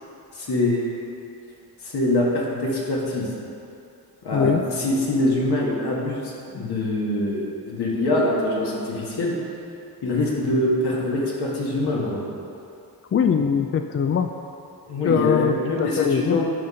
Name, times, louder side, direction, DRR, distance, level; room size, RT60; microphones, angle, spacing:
voice 1, 0.3-0.9 1.8-3.3 4.2-9.3 10.0-12.2 13.4-13.5 14.8-16.4, left 2 dB, 70° left, -4 dB, 1.9 m, -24 dB
voice 2, 4.3-4.6 13.1-14.3 15.0-16.4, left 7 dB, 35° left, 7 dB, 0.4 m, -22 dB
10.5 x 4.2 x 5.0 m, 2.7 s
cardioid pair, 75°, 40 cm